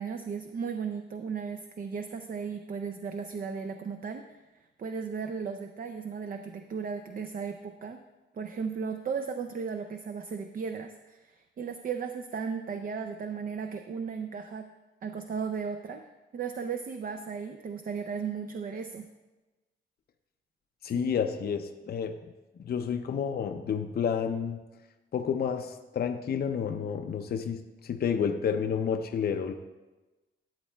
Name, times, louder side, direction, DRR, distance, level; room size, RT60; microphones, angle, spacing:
voice 1, 0.0-4.4 4.8-8.0 8.3-14.7 15.0-16.0 16.3-19.1 21.0-21.1, right 6 dB, 45° right, 7 dB, 0.4 m, -35 dB
voice 2, 20.8-22.2 22.6-24.6 25.1-29.5, left 7 dB, 50° left, 6 dB, 0.4 m, -30 dB
13.0 x 8.0 x 2.2 m, 1.1 s
wide cardioid pair, 125°, 20 cm